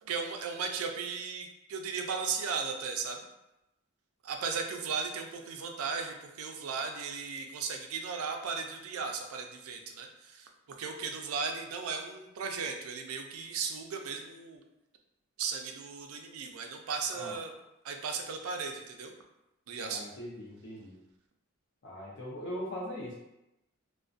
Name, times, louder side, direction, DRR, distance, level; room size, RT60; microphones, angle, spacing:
voice 1, 0.0-3.2 4.2-10.5 10.8-14.6 15.4-17.5 17.8-19.1 19.7-20.0, right 5 dB, 80° right, 4 dB, 0.4 m, -36 dB
voice 2, 19.8-20.9 21.8-23.1, equal, 55° left, -4 dB, 0.5 m, -40 dB
2.5 x 2.1 x 2.4 m, 0.91 s
head